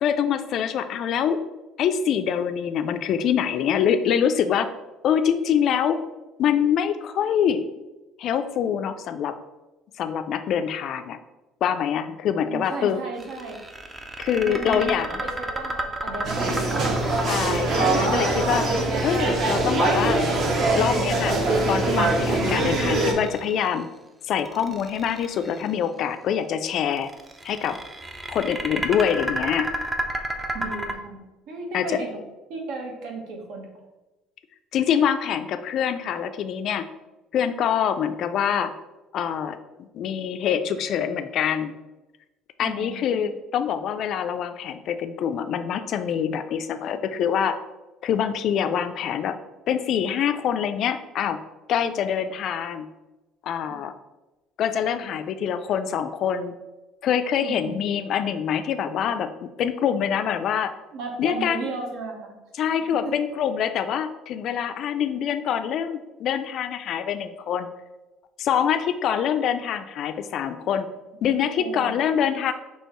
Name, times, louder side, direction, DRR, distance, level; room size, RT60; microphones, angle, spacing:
voice 1, 0.0-1.4 1.8-4.7 5.0-6.0 6.4-7.6 8.2-9.4 10.0-11.2 11.6-13.0 14.2-15.2 17.2-18.7 19.0-20.2 20.7-21.4 21.7-23.9 24.3-27.1 27.4-27.8 28.3-29.7 31.7-32.0 34.7-36.9 37.3-38.7 39.1-41.7 42.6-47.6 48.0-49.4 49.7-51.4 51.7-52.9 53.4-53.9 54.6-56.6 57.0-60.7 61.2-61.6 62.6-67.7 68.4-70.9 71.2-72.5, left 8 dB, 50° left, 9 dB, 0.3 m, -25 dB
voice 2, 12.4-13.5 14.4-17.0 30.5-32.2 32.5-33.8 42.6-43.2 57.4-57.8 60.9-62.4 63.0-63.2 71.1-71.3 71.5-71.9, right 3 dB, 70° right, 1 dB, 1.1 m, -35 dB
sound 1, 13.2-19.4 22.2-23.8 24.3-25.7 26.9-30.9, right 1 dB, 15° right, 0.4 m, -32 dB
sound 2, 16.2-23.1, right 2 dB, 40° right, 0.8 m, -23 dB
6.2 x 2.8 x 3.0 m, 1.1 s
cardioid pair, 145°, 0 cm